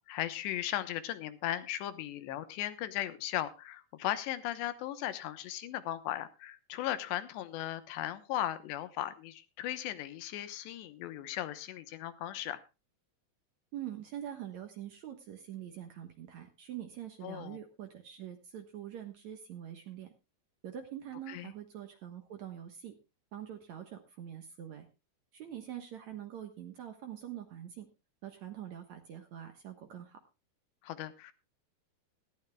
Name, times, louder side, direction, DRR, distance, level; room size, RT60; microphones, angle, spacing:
voice 1, 0.1-12.6 17.2-17.6 21.3-21.5 30.8-31.3, left 13 dB, 75° left, 12 dB, 3.1 m, -37 dB
voice 2, 13.7-20.1 20.6-22.9 23.3-24.9 25.3-27.9 28.2-30.2, right 10 dB, 70° right, 6 dB, 1.7 m, -44 dB
19.0 x 14.0 x 2.3 m, 0.28 s
omnidirectional pair, 5.2 m